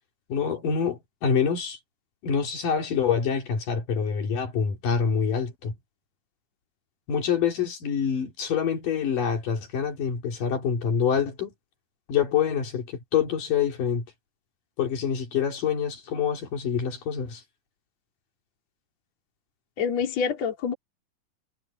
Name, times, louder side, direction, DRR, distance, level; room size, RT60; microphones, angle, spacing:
voice 1, 0.3-1.8 2.2-5.7 7.1-11.5 12.1-14.1 14.8-17.4, left 7 dB, 65° left, 4.4 m, -26 dB
voice 2, 19.8-20.7, left 6 dB, 50° left, 3.6 m, -26 dB
omnidirectional pair, 4.1 m